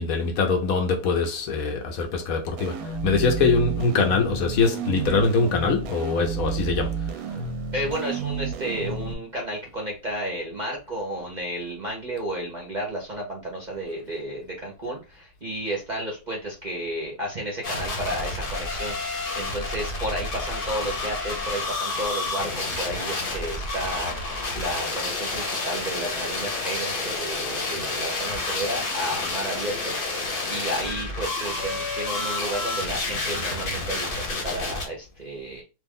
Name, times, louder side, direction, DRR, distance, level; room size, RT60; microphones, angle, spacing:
voice 1, 0.0-7.4, left 4 dB, 70° left, 1.0 m, -23 dB
sound 1, 2.6-9.1, right 5 dB, 70° right, 1.0 m, -31 dB
voice 2, 7.7-35.6, right 1 dB, 40° right, 0.7 m, -32 dB
sound 2, 17.6-34.9, left 3 dB, 45° left, 0.8 m, -29 dB
3.0 x 2.4 x 3.6 m
omnidirectional pair, 1.7 m